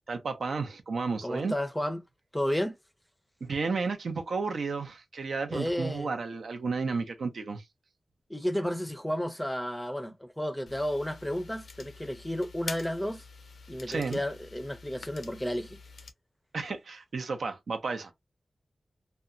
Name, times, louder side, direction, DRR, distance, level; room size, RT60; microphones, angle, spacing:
voice 1, 0.1-1.5 3.4-7.6 13.9-14.2 16.5-18.1, right 4 dB, 90° right, 0.6 m, -32 dB
voice 2, 1.2-2.0 2.3-2.8 5.5-6.2 8.3-13.2 13.7-15.8, equal, 5° left, 0.5 m, -32 dB
sound 1, 10.7-16.1, left 4 dB, 85° left, 0.4 m, -46 dB
2.8 x 2.2 x 2.4 m
wide cardioid pair, 85°, 0 cm